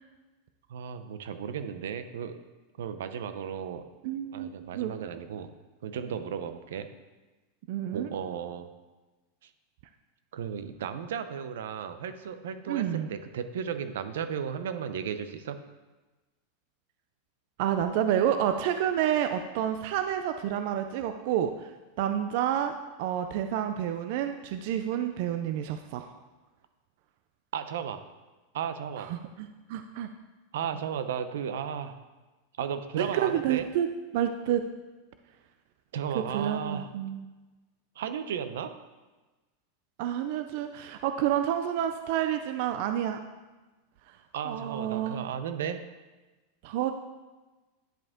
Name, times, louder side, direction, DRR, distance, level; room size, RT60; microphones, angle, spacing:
voice 1, 0.7-2.4 2.8-3.8 4.3-5.5 5.8-6.9 7.9-8.7 9.4-9.5 10.3-15.6 27.5-28.0 28.5-29.1 30.5-32.0 32.6-33.7 35.9-36.9 38.0-38.7 44.3-45.8, right 8 dB, 85° right, 10 dB, 0.6 m, -34 dB
voice 2, 4.0-5.0 7.7-8.1 12.7-13.1 17.6-21.7 22.0-26.1 29.0-30.1 33.0-33.9 34.1-34.6 36.3-37.3 40.0-43.2 44.5-45.2 46.6-46.9, right 10 dB, 50° right, 8 dB, 0.4 m, -29 dB
10.0 x 5.2 x 3.6 m, 1.2 s
supercardioid pair, 175°, 0 cm